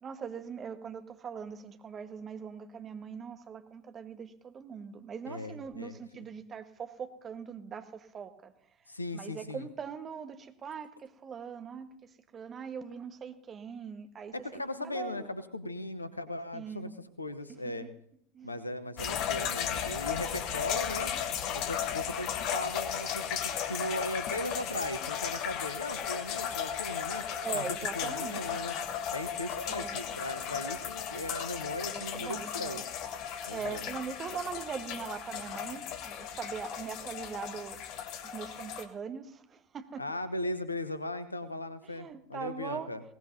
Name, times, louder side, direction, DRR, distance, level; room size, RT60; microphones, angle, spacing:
voice 1, 0.0-8.5 9.1-15.3 16.5-16.9 17.6-17.7 18.3-18.5 27.4-28.6 29.7-30.0 31.9-32.8 33.5-37.8 38.2-40.1 41.8-42.9, right 6 dB, 30° right, 8 dB, 1.4 m, -41 dB
voice 2, 5.3-6.0 8.9-9.7 14.3-17.9 18.4-21.1 21.5-27.2 27.5-28.7 29.1-32.8 33.5-33.8 40.0-43.0, left 1 dB, 85° left, 13 dB, 1.0 m, -38 dB
sound 1, 19.0-38.8, left 8 dB, 45° left, 1.3 m, -35 dB
21.5 x 18.0 x 2.8 m, 0.67 s
figure-of-eight pair, 75°, 0 cm